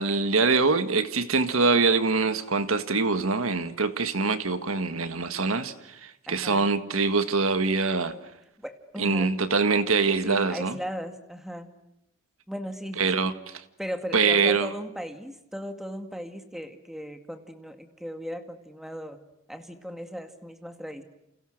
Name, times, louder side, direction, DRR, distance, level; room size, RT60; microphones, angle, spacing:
voice 1, 0.0-8.2 9.0-10.8 13.0-13.3 14.1-14.7, right 4 dB, 90° right, 10 dB, 1.7 m, -24 dB
voice 2, 6.3-6.7 8.6-9.4 10.2-11.7 12.5-13.3 13.8-19.2 19.5-21.0, equal, ahead, 7 dB, 2.0 m, -37 dB
30.0 x 28.5 x 6.5 m, 0.83 s
head